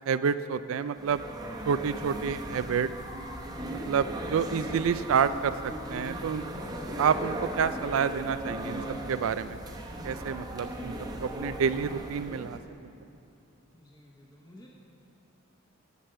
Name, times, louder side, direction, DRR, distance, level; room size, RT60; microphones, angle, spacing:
voice 1, 0.1-1.2 1.7-2.9 3.9-6.4 7.0-8.8 9.1-9.6 10.0-10.9 11.2-12.6, right 6 dB, 75° right, 13 dB, 0.4 m, -28 dB
sound 1, 1.0-12.6, right 1 dB, 20° right, 0.9 m, -37 dB
voice 2, 13.7-14.7, left 1 dB, 20° left, -3 dB, 1.1 m, -53 dB
11.0 x 8.3 x 7.7 m, 2.7 s
head